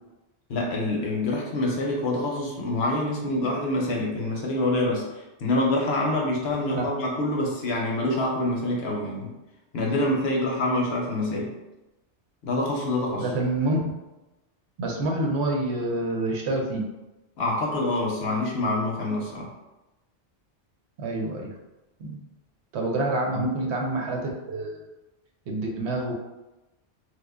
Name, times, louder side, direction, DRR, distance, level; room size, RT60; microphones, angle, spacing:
voice 1, 0.5-9.3 9.7-11.5 12.4-13.3 17.4-19.5 23.3-23.5, left 1 dB, 65° left, -1 dB, 0.8 m, -26 dB
voice 2, 13.2-13.8 14.8-16.9 21.0-21.5 22.0-22.2 22.7-24.8 25.5-26.1, right 2 dB, 70° right, 0 dB, 0.9 m, -27 dB
3.2 x 2.1 x 3.4 m, 1.0 s
omnidirectional pair, 1.2 m